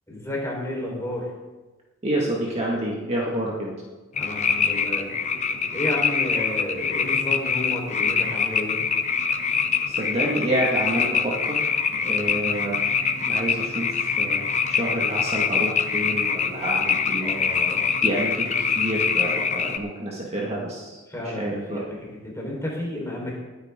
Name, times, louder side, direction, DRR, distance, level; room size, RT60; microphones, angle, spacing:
voice 1, 0.1-1.3 4.1-5.1 5.7-8.8 12.3-12.5 17.2-17.8 21.1-22.0 22.2-23.4, left 1 dB, 15° left, -3 dB, 4.3 m, -31 dB
voice 2, 2.0-3.7 9.9-12.8 13.2-17.3 18.0-21.8, right 1 dB, 30° right, -3 dB, 1.9 m, -28 dB
sound 1, 4.2-19.8, left 6 dB, 35° left, 0.8 m, -24 dB
20.5 x 9.7 x 3.8 m, 1.2 s
head